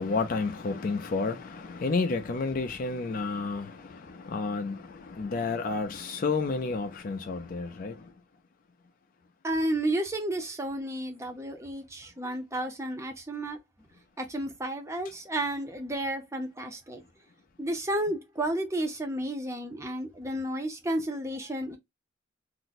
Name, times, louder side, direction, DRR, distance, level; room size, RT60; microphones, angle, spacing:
voice 1, 0.0-8.1, left 4 dB, 45° left, 0.4 m, -31 dB
voice 2, 9.4-13.6 14.2-17.0 17.6-21.8, right 1 dB, 15° right, 0.6 m, -32 dB
2.5 x 2.1 x 3.9 m
head